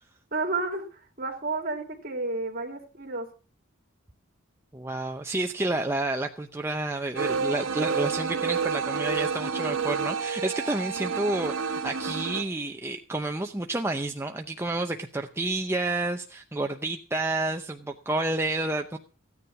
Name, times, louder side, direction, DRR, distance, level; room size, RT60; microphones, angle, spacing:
voice 1, 0.3-3.3, right 3 dB, 45° right, 2 dB, 2.7 m, -31 dB
voice 2, 4.7-19.0, right 2 dB, 10° right, 4 dB, 0.6 m, -30 dB
sound 1, 7.2-12.4, right 5 dB, 80° right, 1.2 m, -29 dB
15.0 x 9.7 x 5.9 m, 0.38 s
head